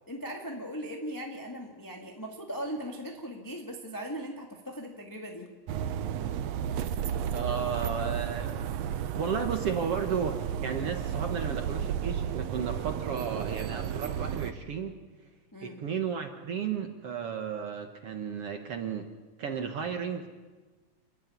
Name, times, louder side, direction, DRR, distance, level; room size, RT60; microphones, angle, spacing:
voice 1, 0.1-5.5 15.5-15.8, equal, 10° left, 0 dB, 1.3 m, -39 dB
sound 1, 5.7-14.5, right 9 dB, 85° right, 1.5 m, -33 dB
voice 2, 7.3-8.9 9.2-14.9 15.6-19.1 19.4-20.3, right 6 dB, 60° right, 5 dB, 1.6 m, -33 dB
28.5 x 13.0 x 9.5 m, 1.3 s
omnidirectional pair, 4.1 m